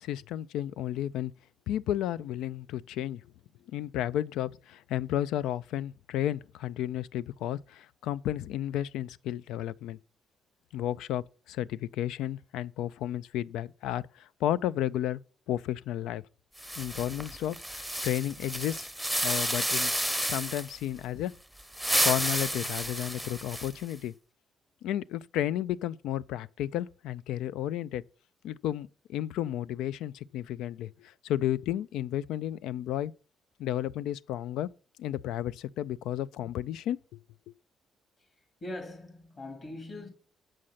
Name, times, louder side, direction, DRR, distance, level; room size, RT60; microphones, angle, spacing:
voice 1, 0.0-1.3 1.7-3.2 3.7-10.0 10.7-15.2 15.5-16.2 16.8-18.9 19.2-19.9 20.3-21.3 22.0-24.1 24.8-28.0 28.4-33.1 33.6-34.7 35.0-37.2, left 12 dB, 90° left, 0.3 m, -32 dB
sound 1, 16.6-20.8 21.6-23.9, equal, ahead, 0.7 m, -31 dB
voice 2, 38.6-40.1, left 1 dB, 45° left, 2.6 m, -41 dB
7.6 x 6.3 x 5.6 m
cardioid pair, 90°, 0 cm